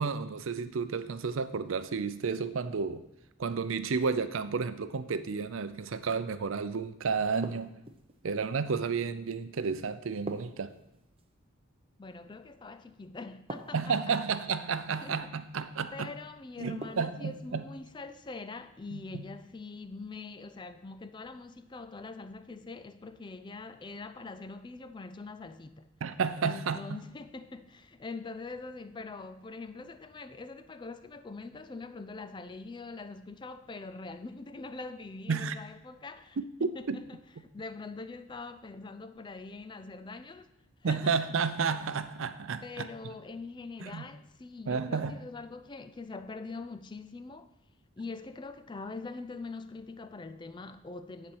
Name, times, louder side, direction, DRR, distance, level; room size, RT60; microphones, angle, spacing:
voice 1, 0.0-3.0 3.4-7.7 8.2-10.7 13.7-16.1 16.6-17.7 18.9-19.2 26.0-26.8 35.3-35.6 36.9-37.0 40.8-42.9 43.8-44.1 44.7-45.2, right 5 dB, 70° right, 0.5 m, -31 dB
sound 1, 7.4-8.2 10.3-11.3 13.5-14.2 16.8-17.4, right 2 dB, 25° right, 0.7 m, -43 dB
voice 2, 12.0-14.2 14.9-15.2 15.9-25.9 26.4-40.5 40.8-41.2 42.6-47.5 48.0-51.4, left 3 dB, 20° left, 0.4 m, -43 dB
10.5 x 4.3 x 6.2 m
head